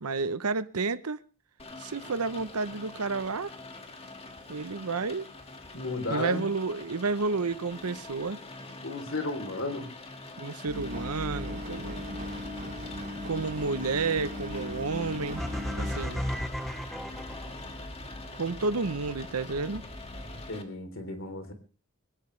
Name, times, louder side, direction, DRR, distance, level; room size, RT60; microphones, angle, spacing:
voice 1, 0.0-1.2 1.8-3.5 4.5-5.3 6.1-8.4 10.4-12.2 13.2-15.5 15.7-16.2 18.3-19.8, right 4 dB, 90° right, 0.9 m, -31 dB
Rain, 1.6-20.6, left 3 dB, 25° left, 2.0 m, -44 dB
voice 2, 5.7-6.4 8.8-9.9 20.5-21.5, left 2 dB, 60° left, 3.5 m, -33 dB
Engine, 10.7-20.4, left 1 dB, 35° right, 5.2 m, -39 dB
sound 1, 15.4-17.8, equal, ahead, 0.9 m, -34 dB
21.0 x 18.0 x 3.3 m
head